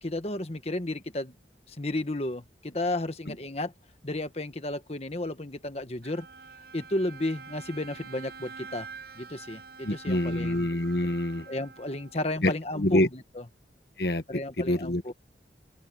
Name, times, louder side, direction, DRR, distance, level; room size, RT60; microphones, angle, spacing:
voice 1, 0.0-1.3 1.7-3.7 4.0-6.3 6.7-8.9 9.2-10.6 11.5-13.0 14.3-15.1, left 1 dB, 35° left, 1.4 m, -32 dB
Bowed string instrument, 6.0-12.4, right 5 dB, 60° right, 7.1 m, -46 dB
voice 2, 9.8-11.5 12.4-13.1 14.0-14.2 14.6-15.0, left 1 dB, 60° left, 1.4 m, -26 dB
head